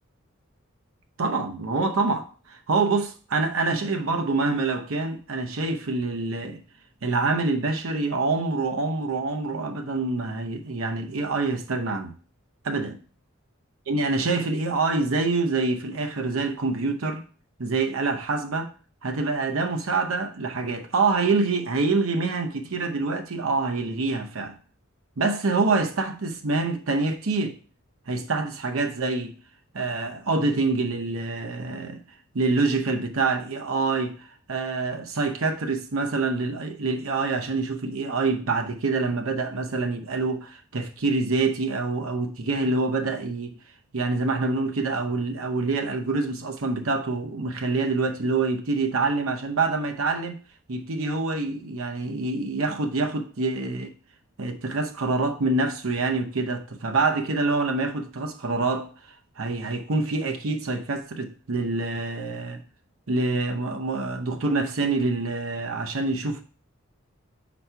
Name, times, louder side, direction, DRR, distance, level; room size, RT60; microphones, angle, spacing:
voice 1, 1.2-6.6 7.0-12.1 12.6-13.0 13.9-17.2 17.6-18.7 19.0-24.5 25.2-27.6 28.1-29.3 29.7-32.0 32.3-43.6 43.9-50.4 50.7-53.9 54.4-62.6 63.1-66.4, right 3 dB, 70° right, 0.7 m, -26 dB
4.6 x 4.2 x 5.5 m
head